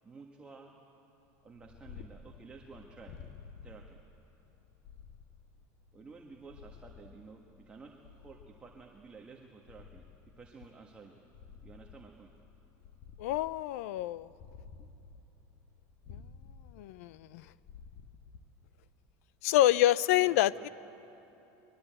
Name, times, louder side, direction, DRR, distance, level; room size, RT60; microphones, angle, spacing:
voice 1, 0.0-0.7 1.4-3.2 3.6-4.0 5.9-10.1 10.4-11.2 11.6-12.3 14.8-14.9 20.1-20.7, right 4 dB, 15° right, 0 dB, 1.6 m, -52 dB
Purr, 1.4-19.1, left 6 dB, 65° left, 1.5 m, -53 dB
voice 2, 13.2-14.3 16.1-16.2 16.7-17.4 19.4-20.7, left 14 dB, 80° left, 19 dB, 0.6 m, -27 dB
23.0 x 22.5 x 9.0 m, 3.0 s
supercardioid pair, 150°, 8 cm